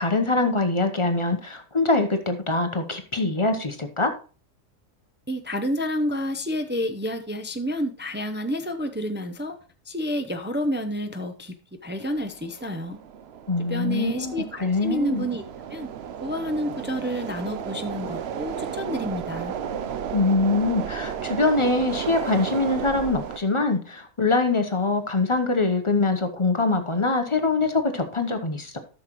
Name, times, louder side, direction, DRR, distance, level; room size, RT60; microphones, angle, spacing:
voice 1, 0.0-4.1 13.5-14.3 14.6-15.3 20.1-28.8, left 3 dB, 25° left, 6 dB, 0.8 m, -23 dB
voice 2, 5.3-9.5 9.9-11.5 11.8-13.0 13.6-15.4 15.7-15.9 16.2-19.5, equal, 15° right, 6 dB, 0.4 m, -29 dB
sound 1, 11.9-23.4, right 8 dB, 60° right, 0.8 m, -34 dB
12.5 x 6.4 x 3.0 m, 0.37 s
omnidirectional pair, 1.3 m